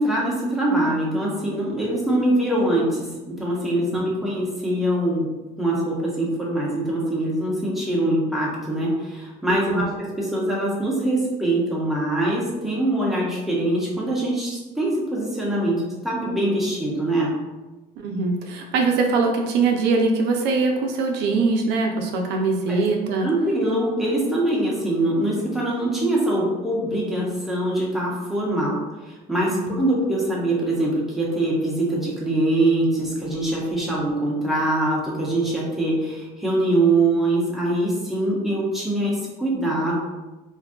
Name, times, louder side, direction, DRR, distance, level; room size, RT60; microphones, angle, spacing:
voice 1, 0.0-5.3 5.6-17.3 22.7-22.8 23.2-40.0, right 1 dB, ahead, -5 dB, 1.0 m, -23 dB
voice 2, 9.5-9.8 18.0-23.3 29.4-29.8, right 4 dB, 90° right, 2 dB, 0.5 m, -22 dB
2.6 x 2.2 x 3.6 m, 1.1 s
cardioid pair, 110°, 17 cm